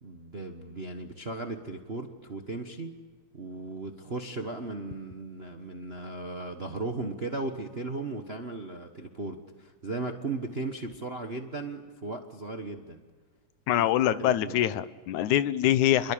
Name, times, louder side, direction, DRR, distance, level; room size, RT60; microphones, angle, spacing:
voice 1, 0.0-3.0 3.3-13.0 13.7-13.9 14.2-14.6, right 3 dB, 55° right, 5 dB, 0.6 m, -36 dB
voice 2, 13.7-16.1, left 12 dB, 80° left, 14 dB, 2.3 m, -24 dB
28.0 x 22.5 x 8.7 m, 1.5 s
omnidirectional pair, 3.4 m